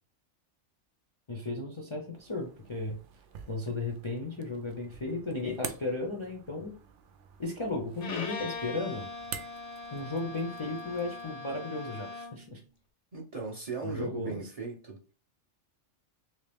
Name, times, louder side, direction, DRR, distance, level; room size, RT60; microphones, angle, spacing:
voice 1, 1.3-3.0 3.5-6.7 7.4-9.1 9.9-12.6 13.8-14.4, left 2 dB, 35° left, 0.5 m, -35 dB
sound 1, 2.1-11.3, right 7 dB, 80° right, 0.9 m, -48 dB
Bowed string instrument, 8.0-12.5, left 4 dB, 85° left, 1.1 m, -41 dB
voice 2, 13.1-15.0, right 4 dB, 40° right, 0.7 m, -38 dB
3.1 x 2.8 x 3.4 m
omnidirectional pair, 1.2 m